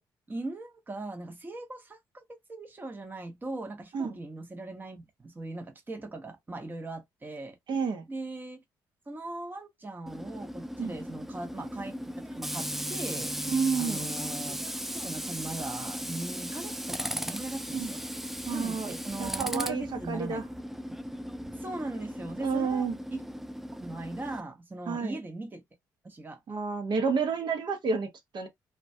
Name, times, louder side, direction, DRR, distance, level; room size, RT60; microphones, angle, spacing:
voice 1, 0.3-2.2 2.5-7.6 8.1-8.6 9.1-13.4 13.7-14.6 14.9-18.0 18.5-20.5 21.5-23.2 23.8-25.6 26.0-26.4, right 2 dB, 20° right, 0.8 m, -39 dB
voice 2, 7.7-8.1 10.8-10.9 13.5-14.1 17.7-17.9 18.5-18.9 19.2-20.4 22.4-22.9 24.9-25.2 26.5-28.5, right 5 dB, 60° right, 0.8 m, -30 dB
Tools, 10.1-24.4, equal, 5° right, 0.4 m, -37 dB
2.2 x 2.1 x 2.6 m
supercardioid pair, 60°, 9 cm